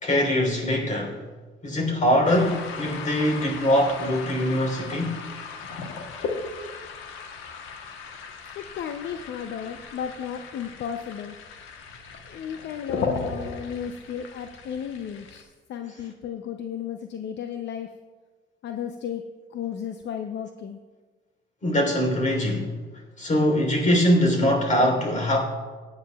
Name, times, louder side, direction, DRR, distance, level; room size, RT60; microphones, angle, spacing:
voice 1, 0.0-1.2 1.6-5.2 21.6-22.7 23.2-25.4, equal, 40° left, 1 dB, 3.4 m, -22 dB
sound 1, 2.2-15.4, left 4 dB, 90° left, 1.1 m, -36 dB
voice 2, 8.6-11.4 12.3-17.9 18.6-19.2 19.5-20.8, left 8 dB, 65° left, 6 dB, 0.6 m, -34 dB
16.5 x 9.7 x 2.3 m, 1.4 s
cardioid pair, 90°, 20 cm